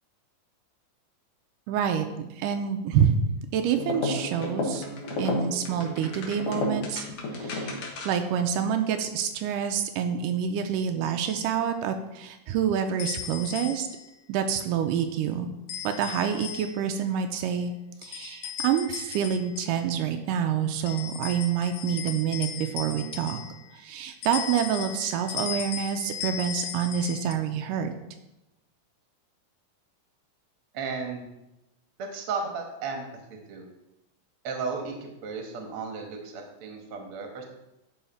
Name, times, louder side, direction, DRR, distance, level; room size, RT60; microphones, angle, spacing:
voice 1, 1.7-2.1 2.3-3.2 3.5-4.9 5.2-7.1 7.4-7.8 8.1-13.9 14.3-15.5 15.8-17.7 18.0-23.4 23.7-27.9, right 8 dB, 85° right, 6 dB, 2.2 m, -27 dB
sound 1, 3.7-8.3, left 2 dB, 60° left, 1.9 m, -32 dB
sound 2, 11.3-11.5 13.0-14.1 15.7-16.9 18.0-19.8 20.9-23.7 24.2-27.3, left 9 dB, 80° left, 1.9 m, -37 dB
voice 2, 30.7-31.3 32.0-33.0 33.3-33.7 34.4-37.4, right 4 dB, 55° right, 2 dB, 1.7 m, -34 dB
11.0 x 4.1 x 4.3 m, 0.93 s
omnidirectional pair, 3.8 m